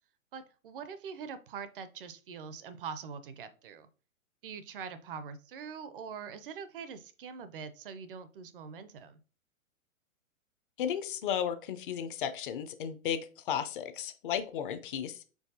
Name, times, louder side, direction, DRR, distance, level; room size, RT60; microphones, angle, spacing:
voice 1, 0.3-3.9 4.4-9.2, right 6 dB, 40° right, 12 dB, 0.5 m, -43 dB
voice 2, 10.8-15.2, left 9 dB, 40° left, 10 dB, 0.5 m, -34 dB
4.7 x 4.1 x 2.6 m, 0.36 s
figure-of-eight pair, 115°, 42 cm